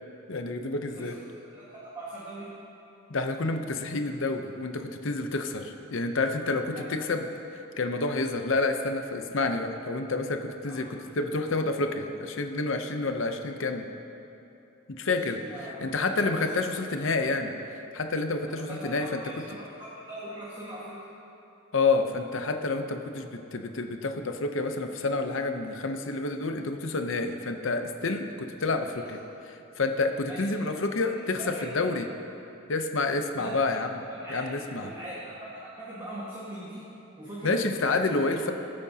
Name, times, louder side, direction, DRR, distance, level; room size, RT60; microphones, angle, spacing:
voice 1, 0.3-1.2 3.1-7.3 7.8-13.9 14.9-19.2 21.7-29.2 29.5-32.1 32.7-33.9 34.3-34.9 37.4-38.5, left 3 dB, 65° left, 6 dB, 0.7 m, -29 dB
voice 2, 1.5-2.7 6.7-6.9 10.6-11.0 15.3-15.9 16.2-16.7 18.5-21.1 28.9-29.1 30.3-30.6 31.1-31.7 33.4-33.6 34.1-34.5 34.8-36.9 37.2-38.2, right 1 dB, 20° right, -8 dB, 1.6 m, -41 dB
21.5 x 8.6 x 2.8 m, 2.9 s
head